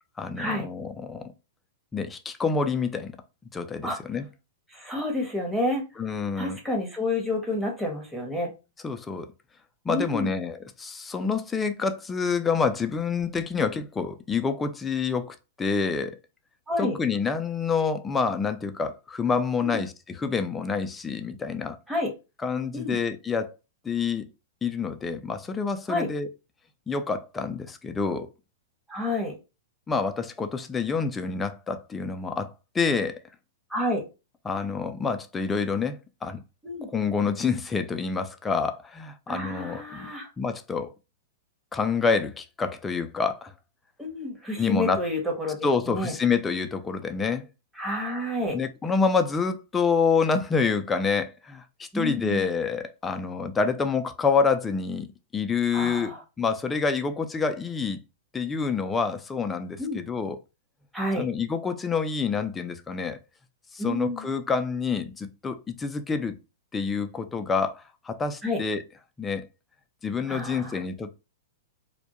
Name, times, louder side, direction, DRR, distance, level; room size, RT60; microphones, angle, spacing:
voice 1, 0.2-1.3 1.9-3.1 3.5-4.3 6.0-6.6 8.8-9.3 9.9-16.2 16.8-21.8 22.4-23.6 23.8-24.3 24.6-26.3 26.9-28.3 29.9-33.2 34.4-36.4 36.9-40.1 40.4-40.9 41.7-43.5 44.6-45.0 45.6-47.5 48.5-55.1 55.3-56.1 56.4-58.0 58.3-60.4 61.2-63.2 63.7-66.4 66.7-68.8 69.2-69.5 70.0-71.2, left 5 dB, 15° left, 0.3 m, -27 dB
voice 2, 4.7-5.9 6.4-8.5 9.9-10.4 16.7-17.0 19.6-19.8 21.9-22.1 22.7-23.0 25.9-26.1 28.9-29.3 33.7-34.0 36.6-36.9 39.3-40.3 44.0-46.1 47.8-48.6 51.9-52.4 55.7-56.2 59.8-60.0 60.9-61.3 63.8-64.3 68.4-68.6 70.3-70.8, left 1 dB, 5° right, 0.9 m, -29 dB
2.2 x 2.1 x 2.8 m
hypercardioid pair, 120°, 0 cm